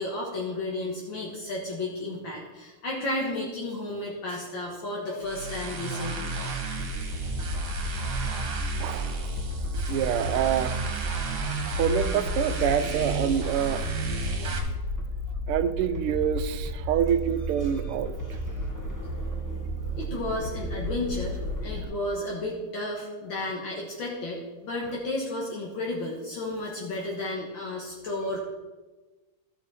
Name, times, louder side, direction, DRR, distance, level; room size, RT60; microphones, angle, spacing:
voice 1, 0.0-6.3 19.9-28.4, left 2 dB, 60° left, -3 dB, 2.2 m, -33 dB
sound 1, 5.2-14.6, right 2 dB, 65° right, 2.1 m, -33 dB
sound 2, 6.8-21.8, right 1 dB, 10° left, 1.0 m, -33 dB
voice 2, 8.8-9.3 9.7-11.0 11.8-13.9 14.4-14.5 15.5-18.2, right 9 dB, 85° right, 11 dB, 1.6 m, -27 dB
14.0 x 6.3 x 4.7 m, 1.2 s
omnidirectional pair, 2.4 m